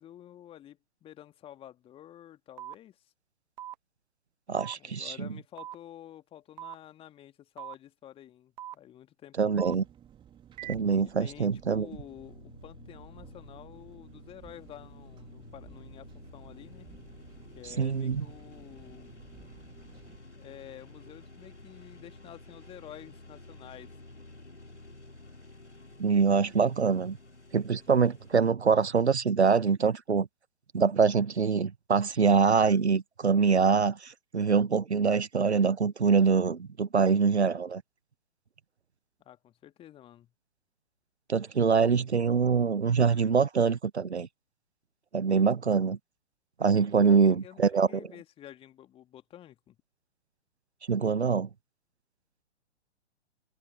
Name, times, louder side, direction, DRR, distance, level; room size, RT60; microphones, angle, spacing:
voice 1, 0.0-3.1 4.8-9.8 11.0-16.9 17.5-19.1 20.4-23.9 39.2-40.3 47.0-49.8, left 11 dB, 15° left, 2.2 m, -50 dB
sound 1, 2.6-2.7 3.6-3.7 4.6-4.8 5.6-5.8 6.6-6.8 7.6-7.8 8.6-8.7 9.6-9.7 10.6-10.7, right 12 dB, 40° right, 1.2 m, -40 dB
voice 2, 4.5-5.3 9.4-9.8 10.7-11.9 17.8-18.2 26.0-27.2 27.5-30.3 30.7-37.8 41.3-44.3 45.1-46.0 46.6-47.9 50.9-51.5, right 5 dB, 70° right, 1.2 m, -24 dB
Engine, 9.5-20.2, right 9 dB, 15° right, 3.0 m, -55 dB
sound 2, 12.2-28.5, left 2 dB, 85° left, 3.1 m, -51 dB
figure-of-eight pair, 120°, 34 cm